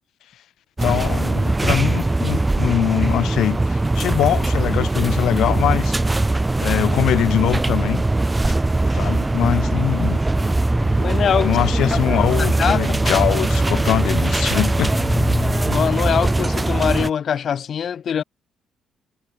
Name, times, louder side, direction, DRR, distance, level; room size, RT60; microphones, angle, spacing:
voice 1, 0.8-6.0 6.6-8.0 8.5-8.6 8.9-10.2 11.4-14.9, left 12 dB, 80° left, 0.6 m, -22 dB
sound 1, 0.8-17.1, right 2 dB, 15° right, 1.1 m, -20 dB
sound 2, 10.3-16.3, left 4 dB, 30° left, 1.8 m, -32 dB
voice 2, 11.0-11.6 11.9-12.8 13.0-13.2 13.6-13.8 15.7-18.2, left 8 dB, 55° left, 3.0 m, -23 dB
cardioid pair, 90°, 0 cm